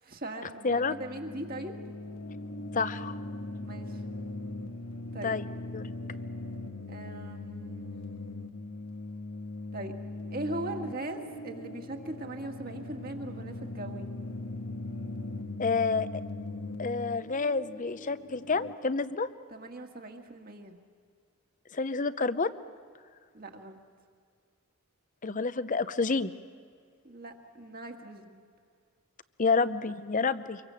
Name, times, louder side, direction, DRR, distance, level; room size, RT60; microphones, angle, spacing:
voice 1, 0.0-1.9 3.6-4.0 5.1-5.4 6.9-7.9 9.7-10.0 10.3-14.1 19.5-20.8 23.3-23.8 27.0-28.4, right 2 dB, 40° right, 3 dB, 1.9 m, -40 dB
voice 2, 0.6-0.9 2.7-3.1 5.2-5.5 5.7-5.9 15.6-16.2 16.8-19.3 21.7-22.5 25.2-26.3 29.4-30.6, left 4 dB, 35° left, 14 dB, 0.7 m, -29 dB
sound 1, 0.7-18.7, left 2 dB, 70° left, 1.3 m, -40 dB
25.5 x 23.0 x 7.6 m, 2.1 s
head